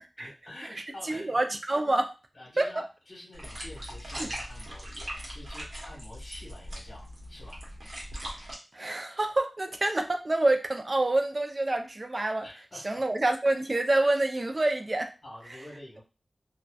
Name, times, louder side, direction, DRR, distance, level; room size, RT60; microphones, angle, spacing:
voice 1, 0.2-1.4 2.3-7.6 12.4-13.0 15.2-16.0, left 1 dB, 45° left, -3 dB, 1.2 m, -47 dB
voice 2, 0.8-2.1 2.6-2.9 4.2-4.3 8.7-12.5 12.8-15.1, right 2 dB, 35° right, 5 dB, 0.3 m, -27 dB
sound 1, 3.3-8.5, equal, 55° right, 0.8 m, -40 dB
2.6 x 2.1 x 2.3 m, 0.31 s
wide cardioid pair, 95°, 0 cm